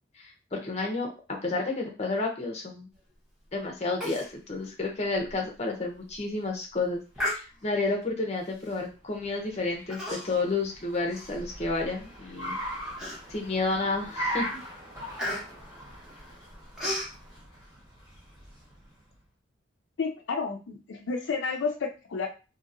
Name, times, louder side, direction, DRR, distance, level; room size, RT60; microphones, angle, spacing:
voice 1, 0.2-2.9 3.5-10.0 10.2-12.6 13.3-14.6, left 3 dB, 35° left, 1 dB, 0.7 m, -31 dB
Human voice, 4.0-4.3 4.6-4.7 5.3-5.4 5.9-6.2 7.1-7.9 8.6-8.9 9.9-10.5 10.9-11.9 12.4-12.5 13.0-13.5 14.0-14.3 14.5-17.1, left 1 dB, 5° right, 0.9 m, -35 dB
Car, 8.8-19.1, equal, 20° right, 1.3 m, -40 dB
voice 2, 20.0-22.3, left 4 dB, 75° left, 3 dB, 0.4 m, -31 dB
2.8 x 2.7 x 2.5 m, 0.32 s
head